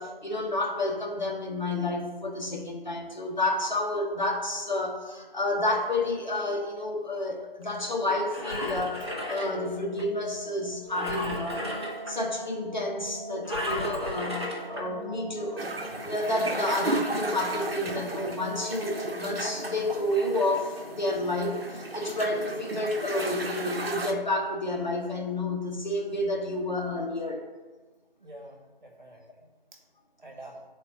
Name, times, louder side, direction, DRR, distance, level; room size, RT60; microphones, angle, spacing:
voice 1, 0.0-11.7 12.1-15.8 16.0-27.4, left 1 dB, 50° left, -1 dB, 1.1 m, -30 dB
sound 1, 7.8-22.7, equal, 30° left, 1.6 m, -43 dB
Engine, 8.1-10.0 10.9-12.1 13.4-14.8 15.5-15.6, left 1 dB, 25° right, 0.9 m, -34 dB
sound 2, 15.6-24.1, right 2 dB, 70° right, 0.9 m, -35 dB
voice 2, 28.2-29.8 30.2-30.6, right 1 dB, 50° right, 0 dB, 1.5 m, -47 dB
10.5 x 4.2 x 2.8 m, 1.3 s
figure-of-eight pair, 165°, 30 cm